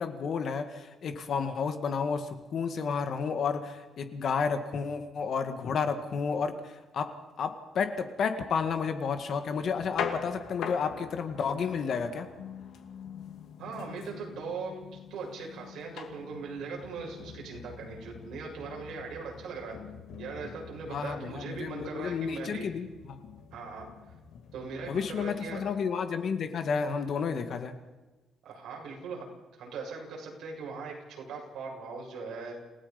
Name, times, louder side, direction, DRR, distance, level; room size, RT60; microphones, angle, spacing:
voice 1, 0.0-12.3 20.9-23.2 24.9-27.8, left 6 dB, 50° left, 7 dB, 2.0 m, -31 dB
sound 1, 9.6-25.7, left 7 dB, 80° left, 2.4 m, -44 dB
voice 2, 13.6-14.7 15.1-19.8 20.2-22.7 23.5-23.9 24.5-25.7 28.4-29.3 29.6-32.6, right 4 dB, 70° right, -1 dB, 7.2 m, -40 dB
28.5 x 18.0 x 5.3 m, 1.2 s
cardioid pair, 165°, 0 cm